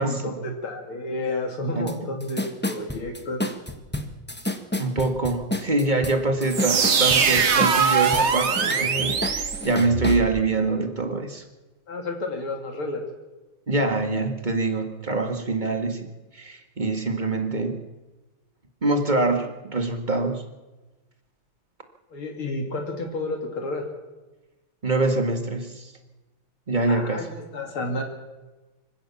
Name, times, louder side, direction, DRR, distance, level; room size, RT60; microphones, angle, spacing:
voice 1, 0.0-3.4 11.9-13.0 22.1-23.9 26.9-28.0, left 2 dB, 80° left, 2 dB, 3.5 m, -31 dB
sound 1, 1.9-2.0 2.2-8.3 8.6-10.2, left 1 dB, 5° left, 0.8 m, -30 dB
voice 2, 4.8-11.4 13.7-17.8 18.8-20.4 24.8-25.9 26.7-27.3, right 2 dB, 20° right, 6 dB, 1.8 m, -25 dB
sound 2, 6.5-10.3, right 6 dB, 40° right, 1.1 m, -22 dB
25.5 x 16.0 x 7.2 m, 1.1 s
omnidirectional pair, 2.3 m